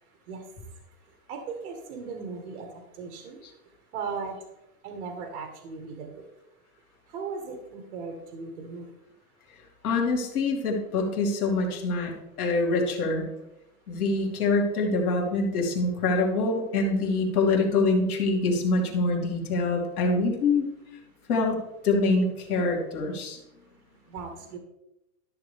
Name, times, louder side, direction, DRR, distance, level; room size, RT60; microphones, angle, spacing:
voice 1, 0.3-0.7 1.3-3.4 3.9-4.3 4.8-6.3 7.1-8.9 24.1-24.6, right 5 dB, 45° right, 3 dB, 1.6 m, -37 dB
voice 2, 9.8-12.1 12.4-13.3 13.9-20.6 21.3-21.6 21.8-23.4, left 3 dB, 70° left, 1 dB, 2.8 m, -25 dB
13.0 x 6.6 x 3.5 m, 0.89 s
supercardioid pair, 180°, 46 cm